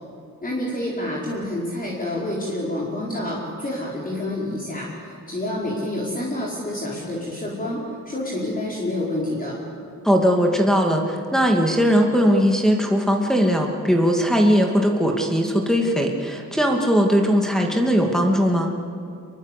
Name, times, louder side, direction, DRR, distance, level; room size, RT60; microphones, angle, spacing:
voice 1, 0.4-9.6, left 1 dB, 25° left, -4 dB, 4.8 m, -28 dB
voice 2, 10.0-18.7, equal, ahead, 0 dB, 2.4 m, -19 dB
25.5 x 22.5 x 8.4 m, 2.4 s
cardioid pair, 105°, 34 cm